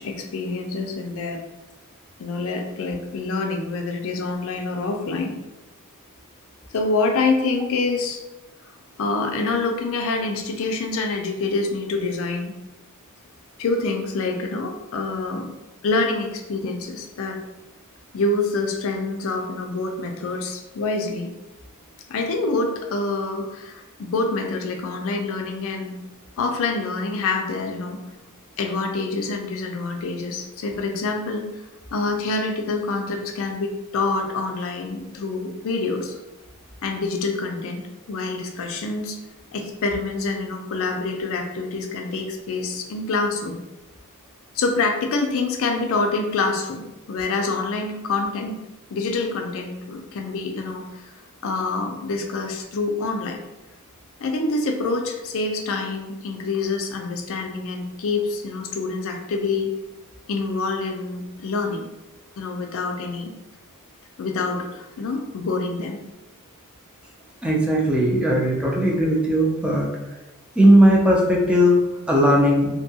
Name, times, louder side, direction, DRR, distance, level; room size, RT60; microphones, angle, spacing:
voice 1, 0.0-1.4 2.2-5.3 6.7-8.2 9.0-12.5 13.6-15.5 15.8-17.4 18.1-21.3 22.1-25.9 26.4-28.0 28.6-31.5 31.9-36.1 36.8-39.2 39.5-43.6 44.5-48.6 48.9-51.1 51.4-53.4 54.2-59.7 60.3-61.9 62.4-63.3 64.2-66.0, left 3 dB, 65° left, 3 dB, 0.4 m, -26 dB
voice 2, 67.4-69.9 70.6-71.8 72.1-72.7, equal, 5° right, -2 dB, 0.3 m, -17 dB
2.6 x 2.2 x 2.7 m, 1.0 s
head